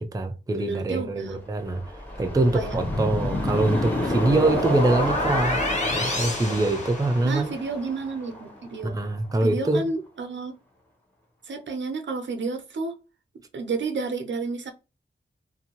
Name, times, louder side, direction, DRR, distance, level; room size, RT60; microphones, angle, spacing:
voice 1, 0.0-1.8 2.2-5.6 5.9-7.5 8.8-9.9, right 2 dB, 20° right, 0.4 m, -24 dB
voice 2, 0.5-1.4 2.5-2.8 7.2-9.0 9.4-10.6 11.4-13.0 13.5-14.7, right 4 dB, 75° right, 0.6 m, -31 dB
sound 1, 1.2-9.7 10.1-10.2, left 1 dB, 10° left, 1.0 m, -34 dB
sound 2, 2.8-7.5, left 1 dB, 40° left, 1.1 m, -28 dB
2.6 x 2.2 x 2.8 m
wide cardioid pair, 100°, 19 cm